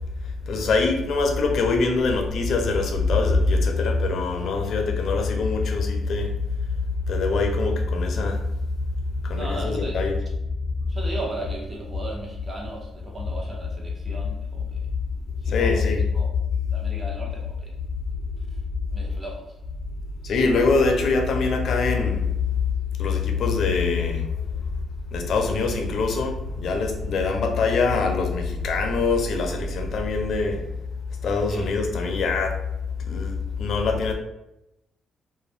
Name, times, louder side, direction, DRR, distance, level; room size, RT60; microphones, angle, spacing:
voice 1, 0.2-6.3 7.1-8.5 9.0-10.2 15.5-16.0 20.2-22.3 23.0-24.3 25.1-30.6 31.2-32.6 33.1-34.1, left 4 dB, 65° left, 4 dB, 0.5 m, -23 dB
voice 2, 9.3-10.0 10.9-14.9 15.4-16.3 16.7-17.7 18.9-19.6 31.4-31.7, right 1 dB, 30° right, -2 dB, 0.9 m, -36 dB
2.4 x 2.1 x 3.3 m, 0.86 s
cardioid pair, 90°, 0 cm